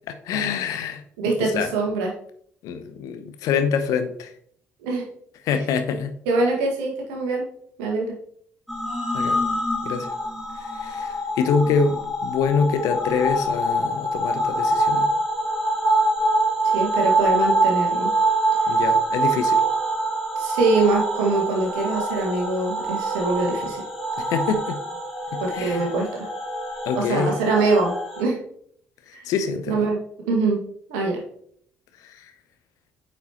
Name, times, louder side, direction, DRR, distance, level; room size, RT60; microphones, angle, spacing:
voice 1, 0.1-1.7 2.6-4.3 5.4-6.2 9.1-9.4 9.8-10.1 10.5-15.1 18.7-19.6 24.2-24.8 25.3-25.9 26.8-27.4 29.1-29.9 32.0-32.3, left 5 dB, 55° left, 9 dB, 0.8 m, -26 dB
voice 2, 1.2-2.1 4.8-5.1 6.3-7.5 7.8-8.1 16.7-18.1 20.4-23.8 25.4-26.3 27.0-28.4 29.1-29.3 29.7-30.0 30.3-30.6 30.9-31.2, right 3 dB, 65° right, 0 dB, 1.8 m, -23 dB
sound 1, 8.7-28.2, right 2 dB, ahead, 2.5 m, -24 dB
8.8 x 5.2 x 2.9 m, 0.64 s
figure-of-eight pair, 45°, 7 cm